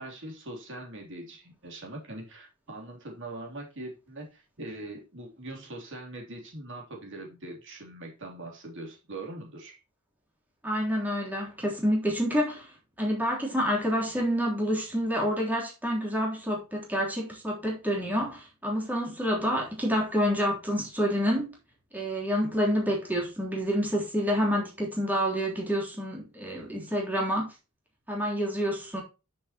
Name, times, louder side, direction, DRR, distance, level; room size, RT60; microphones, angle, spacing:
voice 1, 0.0-9.8, right 2 dB, 55° right, 3.2 m, -42 dB
voice 2, 10.6-12.7 13.0-21.5 21.9-27.5 28.1-29.0, equal, 10° right, 3.4 m, -28 dB
10.0 x 6.6 x 3.0 m
head